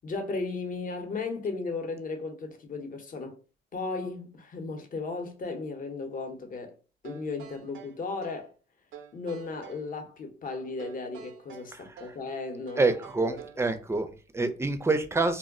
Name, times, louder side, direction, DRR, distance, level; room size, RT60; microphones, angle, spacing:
voice 1, 0.0-3.4 3.7-6.8 7.0-8.5 9.1-12.9 13.2-13.4, left 3 dB, 45° left, 0.8 m, -35 dB
sound 1, 7.0-8.5 8.9-9.9 10.8-12.3 12.7-13.7, right 8 dB, 80° right, 0.5 m, -48 dB
voice 2, 12.8-15.4, right 3 dB, 15° right, 0.4 m, -27 dB
2.2 x 2.1 x 3.6 m
cardioid pair, 90°, 20 cm